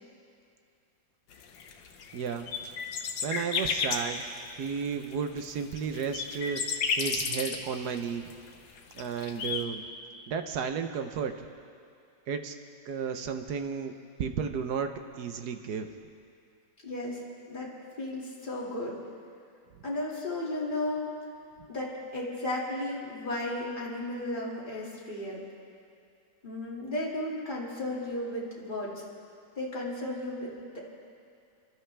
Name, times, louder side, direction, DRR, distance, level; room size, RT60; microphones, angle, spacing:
sound 1, 1.3-9.6, left 5 dB, 80° left, 1.7 m, -32 dB
voice 1, 2.1-2.5 3.2-4.2 4.6-6.6 7.0-8.3 8.9-9.8 10.3-11.3 12.3-12.5 12.9-13.9 14.2-15.9, right 6 dB, 65° right, 7 dB, 1.3 m, -33 dB
voice 2, 16.8-17.7 18.0-18.9 19.8-21.1 21.7-25.4 26.4-28.9 29.6-30.8, left 1 dB, 25° left, -5 dB, 2.6 m, -34 dB
27.5 x 12.5 x 3.4 m, 2.4 s
omnidirectional pair, 1.9 m